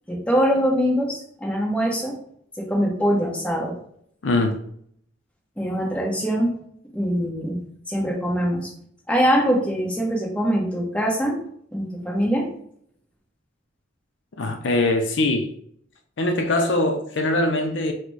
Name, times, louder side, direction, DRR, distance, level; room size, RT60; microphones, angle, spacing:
voice 1, 0.1-2.2 2.6-3.8 5.6-6.5 6.9-7.6 7.9-8.7 9.1-11.4 11.7-12.5, equal, 5° left, 0.9 m, -23 dB
voice 2, 4.2-4.6 14.4-15.5 16.2-17.9, left 2 dB, 65° left, 0.5 m, -22 dB
4.1 x 2.1 x 4.5 m
head